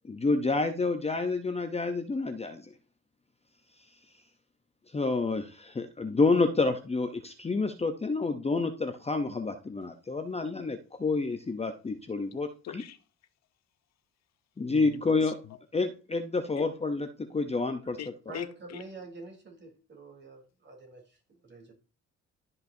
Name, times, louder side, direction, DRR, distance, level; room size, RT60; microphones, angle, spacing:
voice 1, 0.1-2.7 4.9-12.5 12.7-12.8 14.6-15.4 15.7-18.0, left 3 dB, 20° left, 0.7 m, -29 dB
voice 2, 12.6-13.0 14.7-15.3 16.6-16.7 18.0-18.8, left 11 dB, 60° left, 0.6 m, -42 dB
voice 3, 18.3-21.7, right 3 dB, 35° right, 3.4 m, -47 dB
12.5 x 5.4 x 2.7 m
cardioid pair, 90°, 30 cm